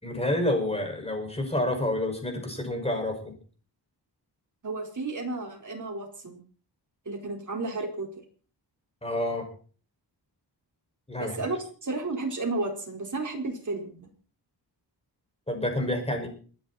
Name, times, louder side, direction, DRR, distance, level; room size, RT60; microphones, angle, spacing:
voice 1, 0.0-3.3 9.0-9.5 11.1-11.5 15.5-16.3, left 1 dB, 15° left, 3 dB, 5.7 m, -28 dB
voice 2, 4.6-6.4 7.0-8.1 11.2-14.1, right 3 dB, 45° right, 1 dB, 4.5 m, -32 dB
27.5 x 10.5 x 4.3 m, 0.42 s
wide cardioid pair, 100°, 42 cm